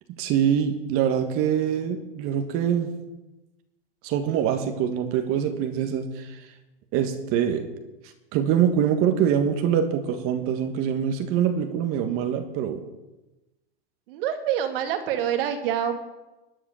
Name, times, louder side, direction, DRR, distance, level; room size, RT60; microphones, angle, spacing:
voice 1, 0.2-2.9 4.0-6.5 6.9-7.7 8.0-12.8, right 8 dB, 45° right, 6 dB, 1.7 m, -24 dB
voice 2, 14.1-16.0, right 9 dB, 60° right, 6 dB, 2.2 m, -26 dB
12.5 x 9.9 x 6.4 m, 1.1 s
hypercardioid pair, 115°, 31 cm